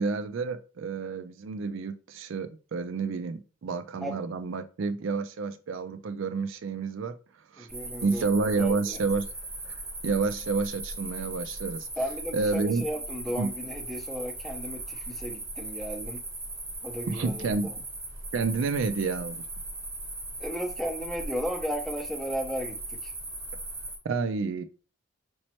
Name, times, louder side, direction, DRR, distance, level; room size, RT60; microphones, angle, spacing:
voice 1, 0.0-7.1 7.5-7.7 8.0-9.3 9.7-9.8 10.0-11.9 12.3-12.8 13.4-13.5 17.1-17.7 18.3-19.5 24.0-24.6, right 4 dB, 65° right, 0.4 m, -29 dB
voice 2, 7.6-9.0 12.0-16.2 16.8-17.8 20.4-23.1, equal, ahead, 0.6 m, -35 dB
sound 1, 7.7-24.0, right 2 dB, 15° right, 0.9 m, -38 dB
5.2 x 3.1 x 2.9 m
head